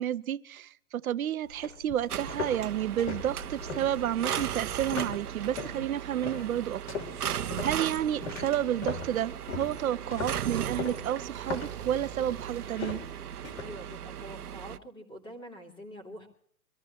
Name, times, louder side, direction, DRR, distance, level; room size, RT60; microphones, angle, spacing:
voice 1, 0.0-6.8 7.2-13.0, right 11 dB, 65° right, 1.0 m, -31 dB
sound 1, 1.5-5.8 6.2-6.6 6.9-13.6, left 4 dB, 60° left, 3.7 m, -39 dB
sound 2, 2.1-14.8, right 10 dB, 85° right, 1.1 m, -37 dB
voice 2, 13.6-16.3, equal, 10° left, 2.8 m, -45 dB
25.0 x 14.0 x 3.1 m
hypercardioid pair, 155°, 44 cm